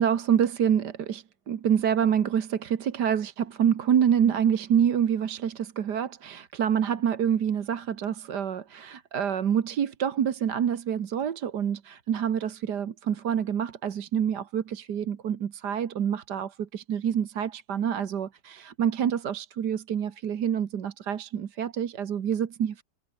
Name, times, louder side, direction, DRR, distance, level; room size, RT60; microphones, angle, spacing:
voice 1, 0.0-22.8, right 8 dB, 70° right, 1.9 m, -27 dB
omnidirectional pair, 1.9 m